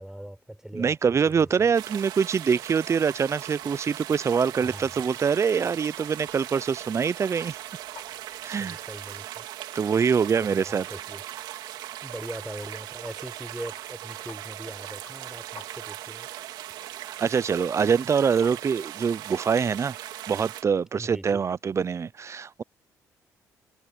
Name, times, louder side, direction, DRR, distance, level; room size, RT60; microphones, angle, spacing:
voice 1, 0.0-1.5 4.6-5.0 8.6-9.4 10.4-11.3 12.0-16.3 21.0-21.4, right 1 dB, 5° right, 4.8 m, -41 dB
voice 2, 0.7-7.6 8.4-8.8 9.7-10.9 17.0-20.0 20.3-22.6, right 6 dB, 40° right, 0.6 m, -24 dB
sound 1, 1.2-9.3, left 3 dB, 25° left, 8.0 m, -60 dB
sound 2, 1.7-20.6, right 13 dB, 80° right, 2.8 m, -39 dB
sound 3, 3.4-19.8, left 8 dB, 65° left, 3.0 m, -55 dB
supercardioid pair, 65°, 7 cm